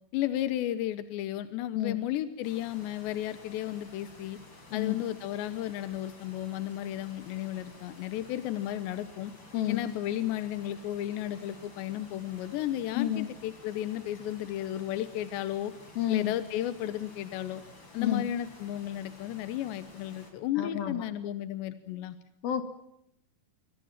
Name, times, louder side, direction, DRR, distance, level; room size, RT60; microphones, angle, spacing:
voice 1, 0.1-4.4 4.7-9.3 9.7-15.7 16.1-17.6 17.9-22.2, left 12 dB, 85° left, 12 dB, 3.3 m, -33 dB
sound 1, 2.4-20.3, left 2 dB, 25° left, 5.6 m, -52 dB
voice 2, 12.9-13.3 16.0-16.3 18.0-18.2 20.6-21.1 22.4-22.6, left 11 dB, 65° left, 9 dB, 3.6 m, -29 dB
27.0 x 23.5 x 7.4 m, 0.78 s
omnidirectional pair, 4.9 m